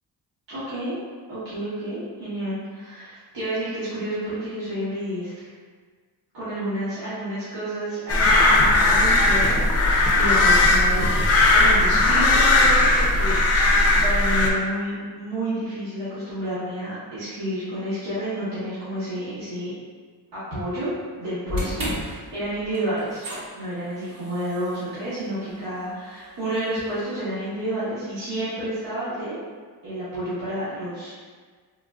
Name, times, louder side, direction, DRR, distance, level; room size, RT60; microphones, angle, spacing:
voice 1, 0.5-1.0 1.3-5.3 6.3-11.2 11.5-19.7 20.3-20.9 21.2-23.2 23.5-29.4 29.8-31.2, right 1 dB, 85° right, -14 dB, 1.3 m, -30 dB
sound 1, 8.1-14.5, left 2 dB, 40° left, 0.4 m, -18 dB
sound 2, 21.5-27.7, left 1 dB, 55° right, 0.9 m, -36 dB
3.7 x 2.4 x 2.3 m, 1.5 s
wide cardioid pair, 115°, 42 cm